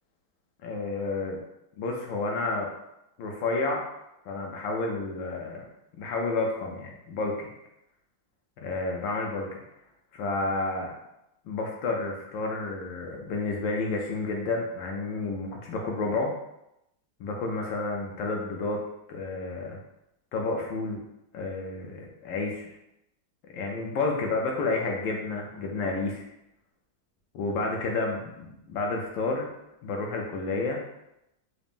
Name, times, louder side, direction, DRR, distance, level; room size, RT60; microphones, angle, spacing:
voice 1, 0.6-1.4 1.8-2.7 3.2-3.8 4.3-5.6 6.0-7.5 8.6-9.5 10.1-10.9 11.5-16.3 17.2-18.8 19.1-19.8 20.3-21.0 21.3-22.7 23.5-26.2 27.3-29.5 29.8-30.8, left 3 dB, 75° left, 0 dB, 1.3 m, -30 dB
3.9 x 2.5 x 3.5 m, 0.85 s
omnidirectional pair, 2.2 m